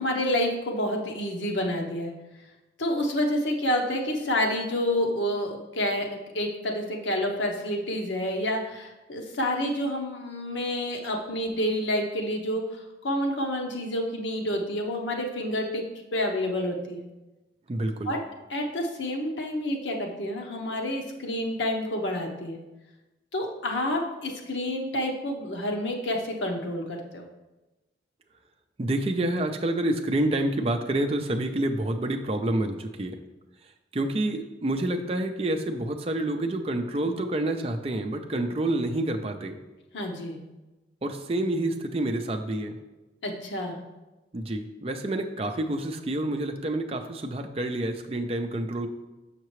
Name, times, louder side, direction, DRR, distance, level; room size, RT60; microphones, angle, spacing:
voice 1, 0.0-2.1 2.8-6.1 6.3-15.8 16.1-17.0 18.0-18.2 18.5-22.6 23.3-27.2 39.9-40.4 43.2-43.8, left 1 dB, 90° left, 2 dB, 0.9 m, -29 dB
voice 2, 17.7-18.1 28.8-33.2 33.9-39.6 41.0-42.8 44.3-48.9, right 1 dB, 35° right, 4 dB, 0.5 m, -28 dB
6.5 x 5.7 x 3.1 m, 1.1 s
head